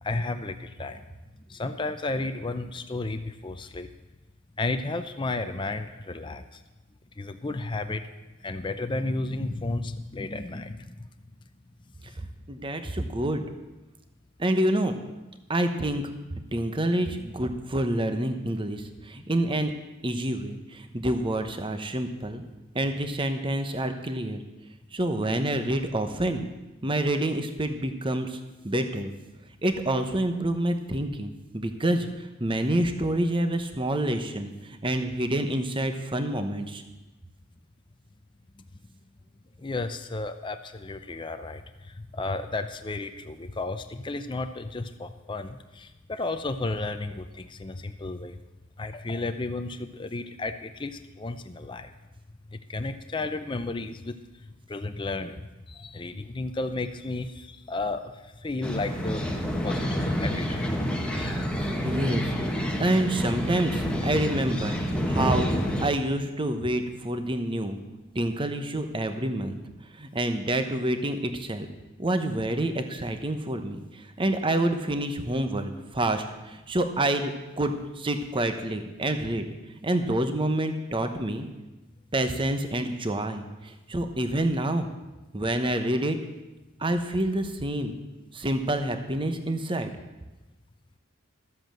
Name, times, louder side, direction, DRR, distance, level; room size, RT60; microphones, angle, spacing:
voice 1, 0.0-1.0 1.5-3.9 4.6-6.6 7.2-8.1 8.4-10.9 12.2-12.3 38.6-38.7 39.6-48.4 48.8-51.9 52.5-54.2 54.7-59.2 59.6-60.7 61.1-61.5 67.7-67.9, left 2 dB, 25° left, 8 dB, 0.6 m, -33 dB
voice 2, 12.5-13.4 14.4-15.0 15.5-16.0 16.5-19.7 20.0-22.4 22.7-24.4 24.9-26.4 26.8-28.4 28.6-29.1 29.6-32.1 32.4-36.8 61.1-61.3 61.6-62.3 62.8-64.8 65.1-65.5 65.8-67.8 68.1-69.6 70.0-71.7 72.0-79.4 79.8-81.4 82.1-83.5 83.9-84.9 85.3-86.2 86.8-87.9 88.3-89.9, right 1 dB, 25° right, 8 dB, 1.0 m, -27 dB
sound 1, 58.6-65.9, equal, 5° left, 1.3 m, -28 dB
12.5 x 7.8 x 7.6 m, 1.1 s
head